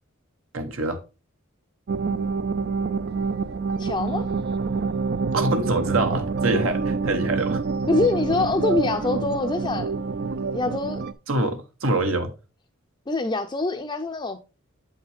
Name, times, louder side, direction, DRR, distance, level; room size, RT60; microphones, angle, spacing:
voice 1, 0.5-1.0 5.3-7.6 11.3-12.3, right 2 dB, 75° right, 1.1 m, -25 dB
sound 1, 1.9-11.1, right 4 dB, 50° right, 0.4 m, -27 dB
voice 2, 3.8-4.3 7.9-9.9 10.5-11.0 13.1-14.4, left 3 dB, 20° left, 0.5 m, -24 dB
8.0 x 5.6 x 3.4 m
head